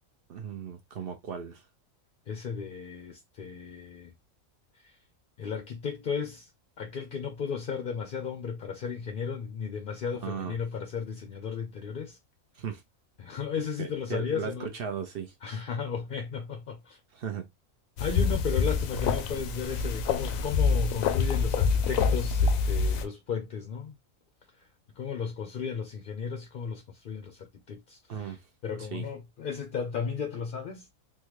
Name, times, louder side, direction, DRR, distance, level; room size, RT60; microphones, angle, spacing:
voice 1, 0.3-1.7 10.2-10.6 12.5-12.8 13.8-15.3 17.1-17.5 28.1-28.5 28.8-29.0, right 7 dB, 60° right, 0.6 m, -37 dB
voice 2, 2.3-4.1 4.7-5.0 5.4-6.5 6.8-12.2 13.2-14.7 15.4-17.0 18.0-24.0 25.0-28.4 28.6-30.9, left 6 dB, 55° left, 0.6 m, -35 dB
sound 1, 18.0-23.0, left 5 dB, 85° left, 1.0 m, -26 dB
3.6 x 2.2 x 3.1 m
omnidirectional pair, 1.4 m